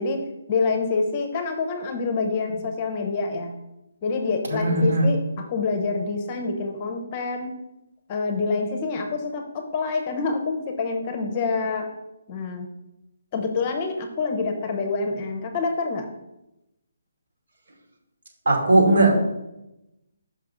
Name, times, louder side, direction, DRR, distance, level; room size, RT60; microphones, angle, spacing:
voice 1, 0.0-3.5 4.0-7.5 8.1-11.9 12.3-12.7 13.3-16.1, left 4 dB, 25° left, 4 dB, 0.7 m, -27 dB
voice 2, 4.5-5.1 18.5-19.2, right 2 dB, 75° right, -2 dB, 2.3 m, -18 dB
5.8 x 5.4 x 3.8 m, 0.91 s
hypercardioid pair, 170°, 0 cm